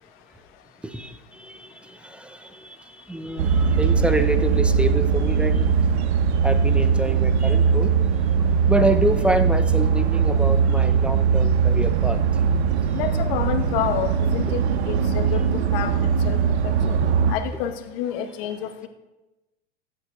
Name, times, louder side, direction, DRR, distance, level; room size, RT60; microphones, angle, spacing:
voice 1, 0.8-5.7 6.4-7.9 8.7-12.2, right 1 dB, 5° right, 0.4 m, -27 dB
sound 1, 3.4-17.4, right 6 dB, 75° right, 0.8 m, -20 dB
voice 2, 12.9-15.9 16.2-16.4 16.6-17.0 17.3-18.9, left 10 dB, 60° left, 1.1 m, -29 dB
15.0 x 8.6 x 2.2 m
supercardioid pair, 115°, 33 cm